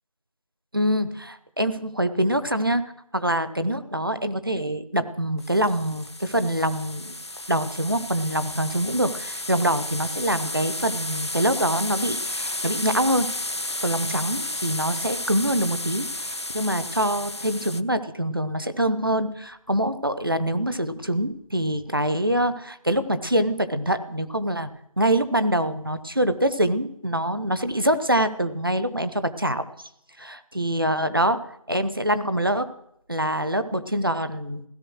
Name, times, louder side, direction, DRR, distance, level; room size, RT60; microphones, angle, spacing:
voice 1, 0.7-2.8 3.1-7.1 7.5-13.3 13.8-24.7 25.0-29.6 30.2-31.4 31.7-32.7 33.1-34.6, right 1 dB, 40° right, 12 dB, 0.9 m, -25 dB
sound 1, 5.4-17.8, left 1 dB, 50° left, 0.5 m, -32 dB
16.0 x 13.5 x 6.3 m, 0.73 s
figure-of-eight pair, 180°, 18 cm